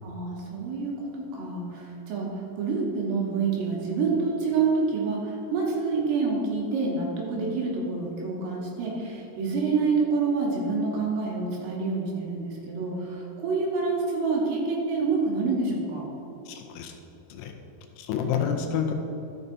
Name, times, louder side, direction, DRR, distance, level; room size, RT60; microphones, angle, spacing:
voice 1, 0.0-16.1, right 4 dB, 80° right, -3 dB, 3.5 m, -27 dB
voice 2, 16.5-16.9 17.3-17.5 18.0-18.9, left 7 dB, 80° left, 4 dB, 2.5 m, -28 dB
12.0 x 6.6 x 2.7 m, 3.0 s
omnidirectional pair, 4.9 m